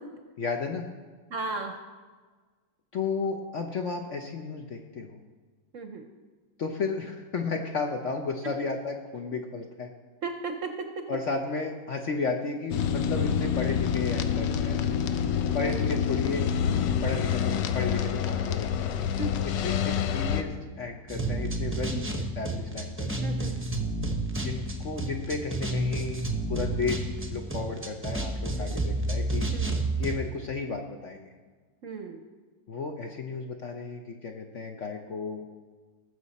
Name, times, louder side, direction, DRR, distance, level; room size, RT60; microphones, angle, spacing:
voice 1, 0.4-0.8 2.9-5.2 6.6-9.9 11.1-14.8 15.5-16.5 17.0-19.0 19.6-22.0 22.3-23.3 24.4-29.5 30.0-31.3 32.7-35.4, left 4 dB, 60° left, 3 dB, 0.8 m, -33 dB
voice 2, 1.3-1.7 5.7-6.0 10.2-10.7 19.2-19.5 22.0-22.1 23.2-23.6 28.5-28.8 29.5-29.8 31.8-32.2, right 3 dB, 60° right, 5 dB, 0.9 m, -35 dB
sound 1, 12.7-20.4, left 8 dB, 75° left, 1.3 m, -27 dB
sound 2, 21.1-30.1, right 2 dB, 10° right, 0.6 m, -30 dB
18.5 x 6.9 x 4.1 m, 1.4 s
omnidirectional pair, 2.0 m